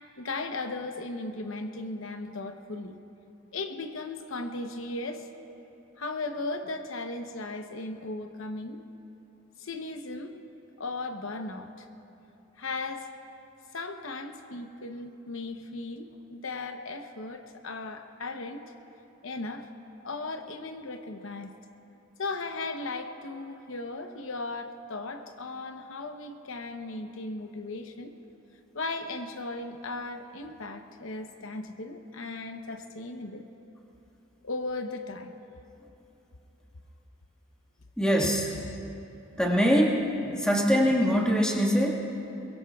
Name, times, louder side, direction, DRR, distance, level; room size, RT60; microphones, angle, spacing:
voice 1, 0.2-3.0 3.5-5.3 6.0-8.9 9.6-10.3 10.8-11.9 12.6-13.1 13.7-18.6 19.2-19.7 20.0-21.5 22.2-28.1 28.7-33.5 34.4-35.3 38.2-38.8, left 2 dB, 80° left, 6 dB, 0.9 m, -36 dB
voice 2, 38.0-38.4 39.4-40.1 40.4-42.0, equal, 5° left, -3 dB, 1.7 m, -23 dB
23.0 x 22.0 x 2.4 m, 3.0 s
head